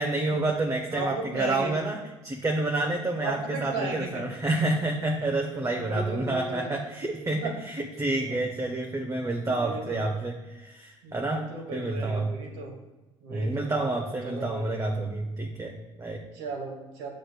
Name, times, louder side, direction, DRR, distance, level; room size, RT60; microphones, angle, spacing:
voice 1, 0.0-2.0 2.2-11.4 11.7-12.3 13.3-16.2, right 2 dB, 20° right, 1 dB, 0.9 m, -29 dB
voice 2, 0.9-1.7 3.2-4.2 5.6-6.7 7.4-7.6 8.2-8.4 9.4-10.0 11.0-12.7 13.2-14.7 16.3-17.1, right 3 dB, 75° right, -1 dB, 1.9 m, -36 dB
7.7 x 6.3 x 2.2 m, 1.1 s
hypercardioid pair, 60°, 15 cm